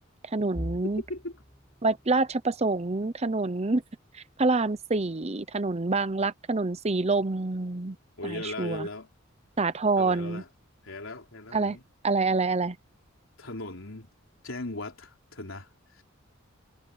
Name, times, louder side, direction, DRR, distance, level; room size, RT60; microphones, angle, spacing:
voice 1, 0.2-1.0 1.8-3.8 4.1-8.0 8.2-8.9 9.6-10.4 11.5-11.8 12.0-12.8, right 3 dB, 30° right, 0.8 m, -27 dB
sound 1, 0.5-12.4 12.8-13.1 13.4-13.6 14.5-14.9, equal, 5° left, 6.4 m, -48 dB
voice 2, 1.0-1.5 8.2-9.1 10.0-10.5 10.8-11.8 13.4-14.1 14.4-16.0, left 2 dB, 75° left, 3.6 m, -38 dB
head